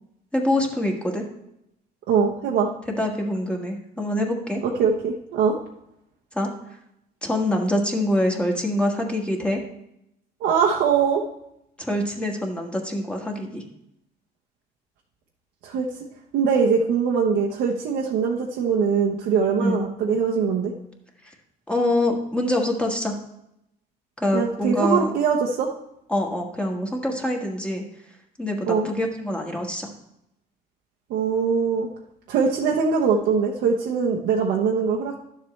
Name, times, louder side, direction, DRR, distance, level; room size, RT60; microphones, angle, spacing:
voice 1, 0.3-1.2 3.0-4.6 6.3-6.5 7.2-9.6 11.8-13.6 19.6-19.8 21.7-23.1 24.2-25.1 26.1-27.8 28.4-29.9, left 1 dB, 5° left, 1 dB, 1.5 m, -25 dB
voice 2, 2.1-2.7 4.6-5.5 10.4-11.2 15.6-15.9 16.3-20.7 24.3-25.7 28.7-28.9 31.1-31.9 32.3-35.2, right 6 dB, 85° right, -2 dB, 1.0 m, -22 dB
11.5 x 7.3 x 3.2 m, 0.80 s
cardioid pair, 110°, 17 cm